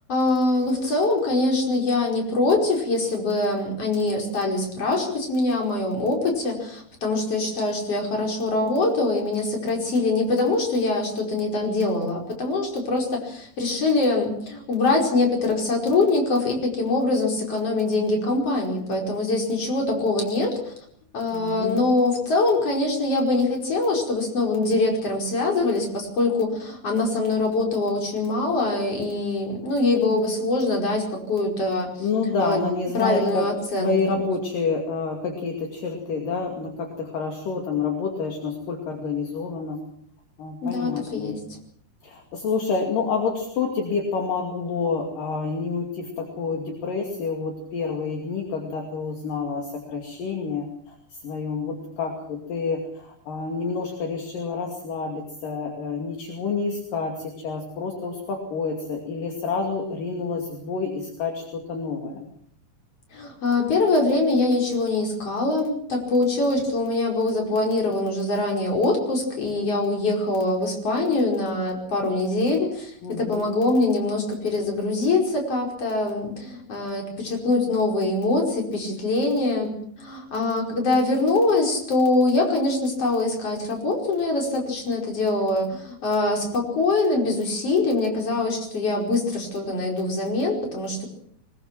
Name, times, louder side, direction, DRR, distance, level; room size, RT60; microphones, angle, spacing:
voice 1, 0.1-20.7 21.1-32.1 32.4-32.6 32.9-34.2 40.6-41.4 63.1-72.9 73.2-91.1, left 2 dB, 35° left, 0 dB, 5.9 m, -23 dB
voice 2, 21.3-21.9 32.0-33.5 33.8-39.8 40.4-41.4 42.0-50.9 51.2-62.3 73.0-73.6, left 4 dB, 60° left, 2 dB, 4.0 m, -28 dB
23.5 x 20.5 x 6.0 m, 0.65 s
omnidirectional pair, 4.5 m